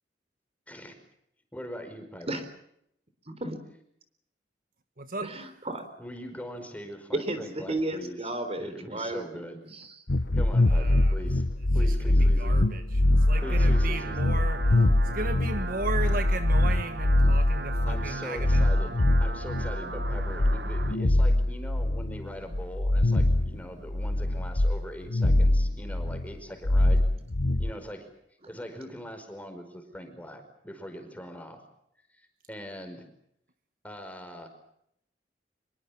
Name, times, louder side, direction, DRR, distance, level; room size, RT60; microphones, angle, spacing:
voice 1, 1.5-2.4 6.0-8.3 8.6-9.6 10.3-11.4 11.7-12.6 13.4-14.2 17.9-27.0 27.6-28.0 28.5-31.6 32.2-33.0 33.8-34.5, equal, 10° left, 6 dB, 5.0 m, -41 dB
voice 2, 3.3-3.6 5.2-5.8 7.1-9.2 9.7-9.9, right 1 dB, 35° right, 9 dB, 3.9 m, -33 dB
voice 3, 5.0-5.3 10.7-11.1 11.8-12.8 13.3-14.6 15.1-18.7, right 3 dB, 55° right, 8 dB, 1.5 m, -35 dB
sound 1, 10.1-26.3 26.6-27.7, left 1 dB, 75° left, 1.2 m, -24 dB
sound 2, 13.0-21.0, right 3 dB, 70° right, 1.3 m, -39 dB
25.5 x 23.0 x 7.2 m, 0.74 s
head